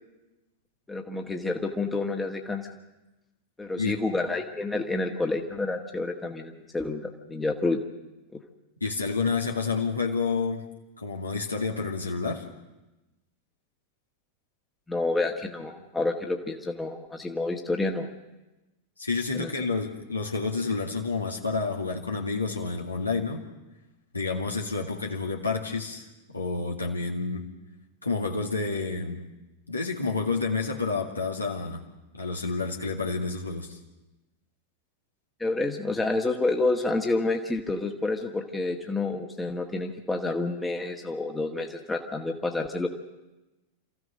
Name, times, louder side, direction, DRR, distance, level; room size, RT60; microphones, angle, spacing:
voice 1, 0.9-2.7 3.6-7.8 8.3-8.4 14.9-18.1 19.3-19.5 35.4-42.9, left 2 dB, 10° left, 2 dB, 1.7 m, -29 dB
voice 2, 8.8-10.6 11.0-12.5 19.0-23.4 24.1-27.5 28.0-29.3 29.7-31.8 32.1-33.8, left 4 dB, 80° left, 0 dB, 2.1 m, -29 dB
27.5 x 15.0 x 6.6 m, 1.0 s
figure-of-eight pair, 90°, 0 cm